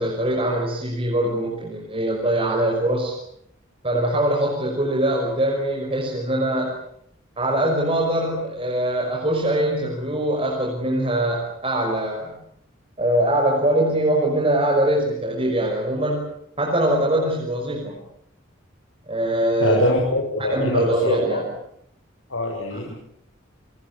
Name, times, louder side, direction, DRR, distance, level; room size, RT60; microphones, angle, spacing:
voice 1, 0.0-3.1 3.8-6.8 7.4-12.4 13.0-16.3 16.6-18.0 19.1-19.9 20.4-21.5 22.7-22.8, right 1 dB, 30° right, 0 dB, 5.8 m, -22 dB
voice 2, 19.6-21.4 22.3-23.0, left 1 dB, 90° left, 0 dB, 6.5 m, -23 dB
29.5 x 24.5 x 7.1 m, 0.69 s
head